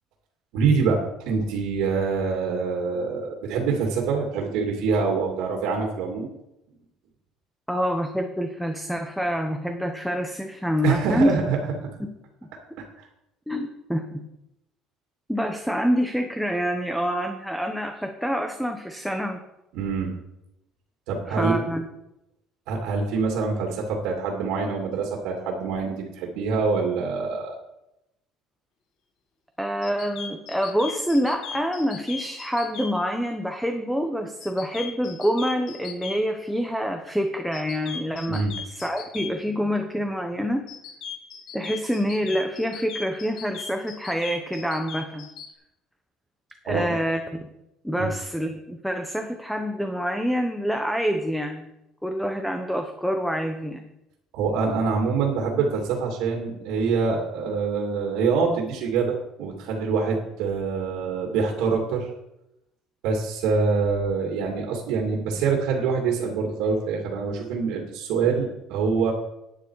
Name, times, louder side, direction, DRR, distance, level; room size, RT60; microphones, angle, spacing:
voice 1, 0.5-6.3 10.8-11.6 13.0-13.1 19.7-20.1 21.1-21.5 22.7-27.6 38.3-38.5 46.6-47.0 48.0-48.1 54.3-62.1 63.0-69.1, right 5 dB, 75° right, 1 dB, 2.4 m, -25 dB
voice 2, 7.7-11.4 13.5-14.2 15.3-19.4 21.3-21.9 29.6-40.6 41.5-45.3 46.6-47.4 47.8-51.7 52.0-53.8, equal, ahead, 5 dB, 1.0 m, -26 dB
sound 1, 29.8-32.9 34.4-36.2 37.5-39.3 40.7-45.5, left 6 dB, 60° left, 2.3 m, -37 dB
11.5 x 9.6 x 4.8 m, 0.88 s
cardioid pair, 140°, 0 cm